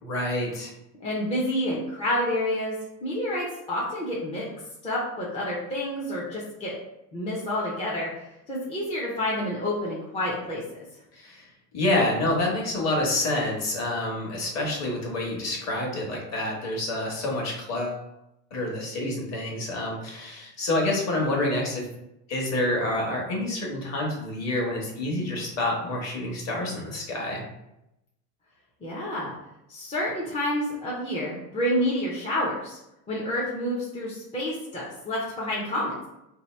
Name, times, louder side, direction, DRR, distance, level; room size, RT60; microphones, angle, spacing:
voice 1, 0.0-0.7 11.1-11.5 11.7-18.0 18.5-21.8 22.3-27.4, left 1 dB, 35° left, -1 dB, 1.1 m, -28 dB
voice 2, 1.0-2.8 3.0-4.5 4.8-6.7 7.1-8.1 8.5-10.8 28.8-29.3 29.7-32.8 33.1-35.9, left 1 dB, 15° left, -6 dB, 0.5 m, -29 dB
2.8 x 2.6 x 4.3 m, 0.86 s
supercardioid pair, 140°, 45 cm